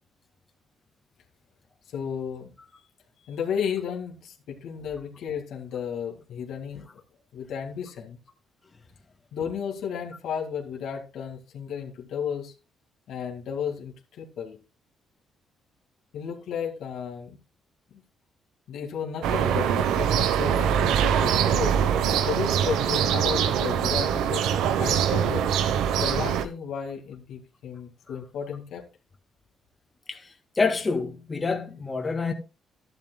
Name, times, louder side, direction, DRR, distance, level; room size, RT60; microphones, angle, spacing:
voice 1, 1.9-2.5 3.2-6.9 7.3-8.2 9.3-12.5 13.1-14.6 16.1-17.4 18.7-21.8 22.2-25.5 25.9-28.9, left 7 dB, 75° left, 2.2 m, -33 dB
sound 1, 19.2-26.5, right 8 dB, 90° right, 0.9 m, -23 dB
voice 2, 30.1-32.3, left 4 dB, 25° left, 1.8 m, -27 dB
12.0 x 11.0 x 2.2 m
cardioid pair, 90°, 0 cm